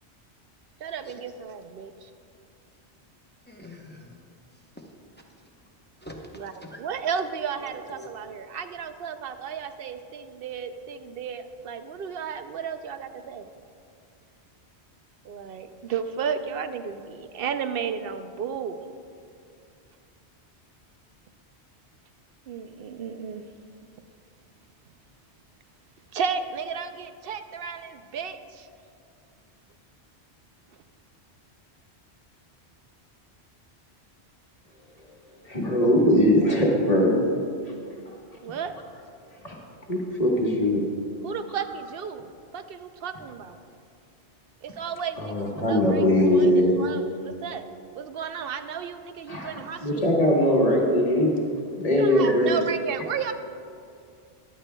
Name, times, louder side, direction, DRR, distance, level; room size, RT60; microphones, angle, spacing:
voice 1, 0.8-1.9 6.3-6.5 6.8-13.5 15.2-18.8 22.5-23.4 26.1-28.7 38.4-38.7 41.2-43.6 44.6-47.7 47.9-50.1 51.9-53.3, right 7 dB, 65° right, 9 dB, 0.7 m, -33 dB
voice 2, 3.5-4.2 4.8-4.9 6.0-6.8 7.6-8.1, left 1 dB, 10° left, 0 dB, 0.7 m, -44 dB
voice 3, 35.4-37.2 39.4-39.5 39.9-40.8 45.2-46.9 49.3-49.5 49.8-51.4 51.8-52.6, left 1 dB, 35° left, -2 dB, 1.4 m, -21 dB
14.5 x 11.0 x 2.2 m, 2.4 s
omnidirectional pair, 1.1 m